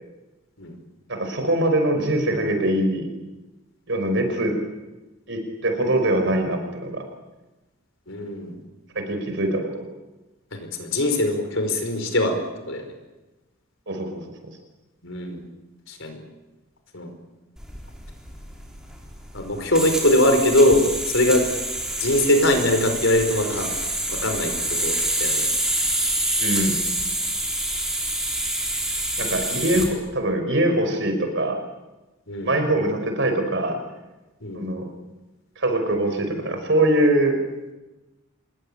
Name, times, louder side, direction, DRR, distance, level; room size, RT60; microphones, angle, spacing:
voice 1, 1.1-3.1 3.9-4.6 5.3-7.0 9.0-9.9 13.9-14.2 26.4-26.8 29.2-31.6 32.4-33.8 34.5-34.9 35.6-37.4, right 1 dB, 55° right, 5 dB, 5.4 m, -23 dB
voice 2, 8.1-8.6 10.5-12.4 12.7-12.9 15.0-15.4 15.9-16.2 16.9-17.1 19.3-21.5 22.0-23.7 24.1-25.5 29.2-29.3 32.3-32.5 34.4-34.6, left 1 dB, 60° left, 6 dB, 5.2 m, -22 dB
sound 1, 17.6-29.9, right 1 dB, 5° right, 4.2 m, -27 dB
26.5 x 21.0 x 8.9 m, 1.1 s
head